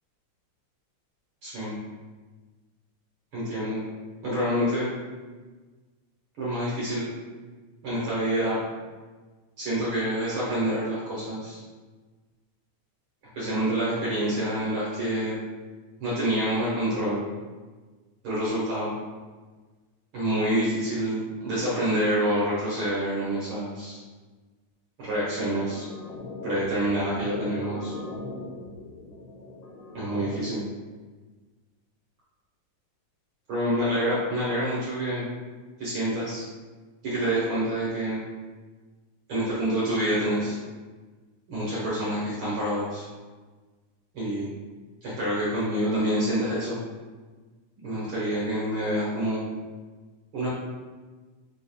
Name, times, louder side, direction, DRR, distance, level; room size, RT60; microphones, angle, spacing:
voice 1, 1.4-1.8 3.3-3.8 4.2-4.9 6.4-7.1 7.8-8.6 9.6-11.6 13.3-15.3 16.0-17.2 18.2-18.9 20.1-24.0 25.0-25.8 26.4-27.9 29.9-30.6 33.5-35.3 35.8-36.4 37.0-38.2 39.3-40.6 41.5-43.0 44.1-44.5 45.0-46.8 47.8-49.4 50.3-50.5, right 1 dB, 60° right, -9 dB, 1.4 m, -27 dB
sound 1, 25.6-30.6, left 2 dB, 80° left, 1.9 m, -39 dB
4.7 x 3.6 x 2.2 m, 1.3 s
omnidirectional pair, 3.6 m